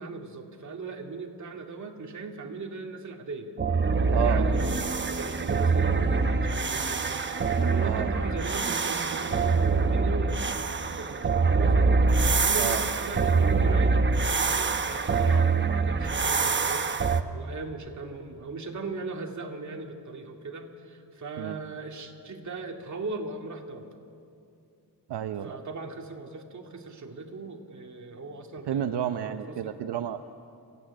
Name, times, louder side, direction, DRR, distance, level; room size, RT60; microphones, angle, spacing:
voice 1, 0.0-3.5 4.2-11.9 12.2-23.9 25.4-29.7, right 3 dB, 45° right, 1 dB, 2.5 m, -39 dB
sound 1, 3.6-17.2, right 4 dB, 30° right, 0.9 m, -24 dB
voice 2, 4.1-4.5 7.8-8.1 12.6-12.8 21.4-21.6 25.1-25.6 28.7-30.2, right 10 dB, 80° right, 8 dB, 0.8 m, -30 dB
Bowed string instrument, 5.4-9.8, left 2 dB, 20° left, 5.0 m, -46 dB
27.0 x 15.5 x 9.9 m, 2.6 s
wide cardioid pair, 140°, 41 cm